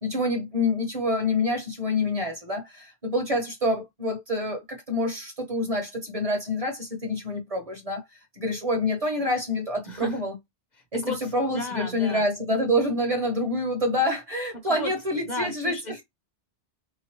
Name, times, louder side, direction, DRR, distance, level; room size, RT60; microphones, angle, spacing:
voice 1, 0.0-8.0 8.3-10.3 10.9-11.0 11.3-16.0, left 1 dB, 35° right, 0.9 m, -27 dB
voice 2, 9.8-10.2 10.8-12.2 14.7-14.9 15.2-15.8, left 1 dB, 45° left, 1.0 m, -34 dB
3.8 x 2.8 x 2.9 m
omnidirectional pair, 1.1 m